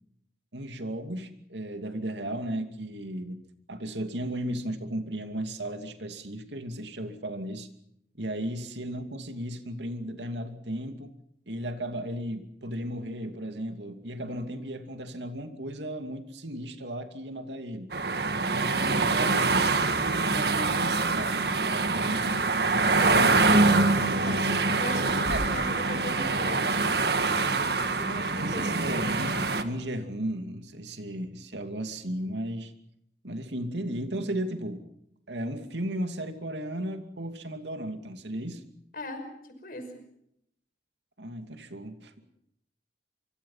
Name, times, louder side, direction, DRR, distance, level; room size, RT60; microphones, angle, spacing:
voice 1, 0.5-3.4 3.7-7.7 8.2-11.1 11.5-17.9 18.5-19.7 20.1-22.5 25.3-25.6 28.4-32.7 33.2-34.8 35.3-38.6 41.2-42.1, right 1 dB, 85° right, 7 dB, 2.6 m, -35 dB
sound 1, 17.9-29.6, right 3 dB, 65° right, 1.8 m, -25 dB
voice 2, 18.7-19.9 23.0-29.2 38.9-40.0, left 1 dB, 55° left, 7 dB, 5.7 m, -39 dB
25.0 x 24.5 x 5.8 m, 0.75 s
head